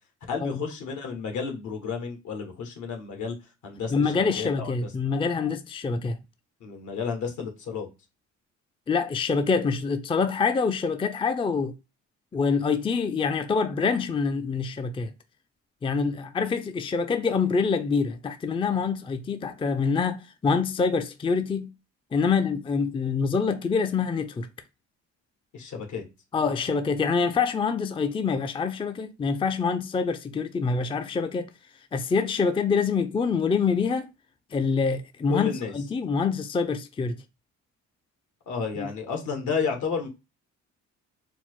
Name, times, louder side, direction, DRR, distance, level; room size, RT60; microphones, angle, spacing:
voice 1, 0.3-3.3 3.6-4.7 6.6-7.9 25.5-26.0 35.3-35.7 38.5-40.1, left 5 dB, 75° left, 1.4 m, -31 dB
voice 2, 3.9-6.2 8.9-11.7 12.3-15.1 15.8-21.7 22.1-24.5 26.3-31.5 31.9-34.1 34.5-37.2 38.8-38.9, left 5 dB, 20° left, 0.4 m, -26 dB
4.3 x 2.0 x 4.4 m
cardioid pair, 90°, 30 cm